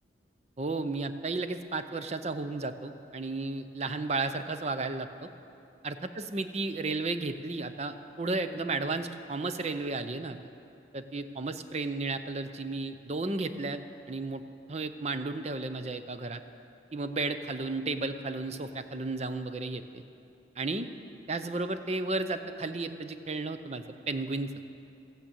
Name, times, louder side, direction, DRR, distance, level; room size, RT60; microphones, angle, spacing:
voice 1, 0.6-5.3 5.8-10.4 10.9-13.8 14.1-14.4 14.7-16.4 16.9-20.0 20.6-20.9 21.3-24.5, right 3 dB, 35° right, 10 dB, 0.6 m, -33 dB
15.0 x 8.9 x 8.3 m, 2.7 s
head